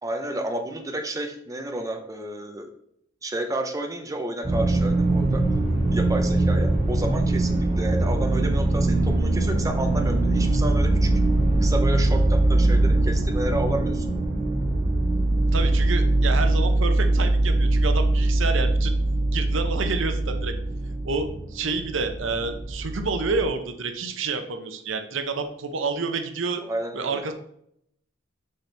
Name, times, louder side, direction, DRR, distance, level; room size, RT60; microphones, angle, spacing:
voice 1, 0.0-2.7 3.2-5.4 5.9-11.1 11.6-14.3 26.6-27.2, right 1 dB, 15° right, 4 dB, 0.7 m, -31 dB
sound 1, 4.4-23.5, right 2 dB, 35° right, 2.1 m, -22 dB
voice 2, 15.5-18.9 19.3-20.5 21.0-26.6 26.9-27.3, right 4 dB, 70° right, 7 dB, 0.8 m, -29 dB
6.5 x 5.8 x 3.4 m, 0.73 s
head